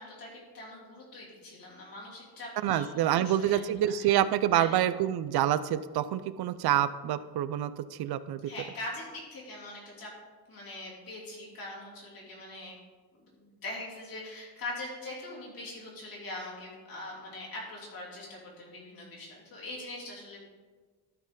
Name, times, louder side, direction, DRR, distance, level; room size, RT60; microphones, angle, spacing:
voice 1, 0.0-4.1 4.5-4.8 8.4-10.1 10.5-12.8 13.1-20.4, left 2 dB, 60° left, -4 dB, 3.0 m, -42 dB
voice 2, 2.6-8.4, right 11 dB, 80° right, 14 dB, 0.5 m, -27 dB
12.5 x 4.5 x 5.1 m, 1.4 s
wide cardioid pair, 170°, 38 cm